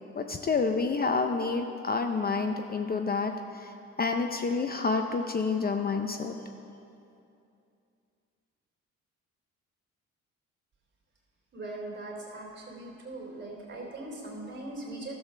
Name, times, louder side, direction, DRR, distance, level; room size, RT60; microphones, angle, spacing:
voice 1, 0.1-3.7 4.0-6.3, left 4 dB, 30° left, 6 dB, 0.6 m, -29 dB
voice 2, 11.5-15.1, right 2 dB, 40° right, -2 dB, 3.2 m, -40 dB
12.5 x 7.1 x 6.5 m, 2.6 s
cardioid pair, 90°, 30 cm